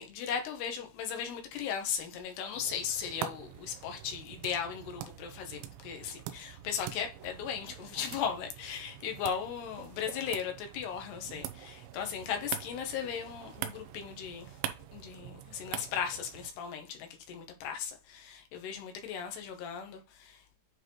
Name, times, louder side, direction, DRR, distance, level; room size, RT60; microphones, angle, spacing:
voice 1, 0.0-14.6 14.9-20.4, left 7 dB, 75° left, 3.0 m, -37 dB
sound 1, 2.5-16.5, right 11 dB, 90° right, 3.0 m, -44 dB
9.2 x 4.0 x 3.1 m
omnidirectional pair, 5.0 m